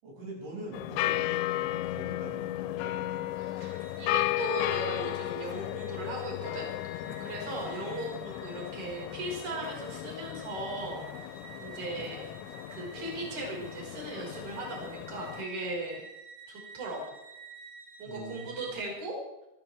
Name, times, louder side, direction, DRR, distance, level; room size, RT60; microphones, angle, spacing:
voice 1, 0.0-3.0 7.0-7.5 15.6-15.8 18.0-18.7, right 2 dB, 90° right, -3 dB, 9.4 m, -44 dB
sound 1, 0.7-15.4, left 16 dB, 80° left, 2.9 m, -35 dB
sound 2, 3.4-18.7, right 4 dB, 70° right, 5.5 m, -51 dB
voice 2, 3.6-11.3 11.6-12.2 12.7-16.1 16.5-17.2 18.0-19.2, right 2 dB, 40° right, -3 dB, 6.5 m, -38 dB
25.0 x 15.0 x 3.5 m, 0.94 s
omnidirectional pair, 5.5 m